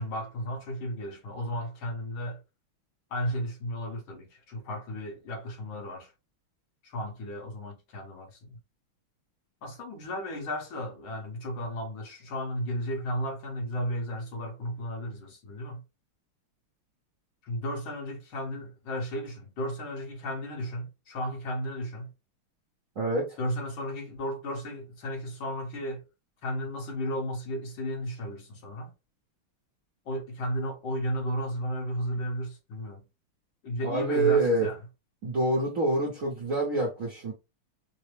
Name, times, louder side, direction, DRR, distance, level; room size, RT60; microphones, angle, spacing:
voice 1, 0.0-2.4 3.1-6.1 6.8-8.6 9.6-15.8 17.4-22.1 23.4-26.0 26.4-28.9 30.1-33.1 33.6-34.8, equal, 70° left, 1.9 m, -34 dB
voice 2, 23.0-23.4 33.8-34.7 35.2-37.3, right 2 dB, 55° right, 0.9 m, -26 dB
4.0 x 2.0 x 3.2 m
omnidirectional pair, 2.4 m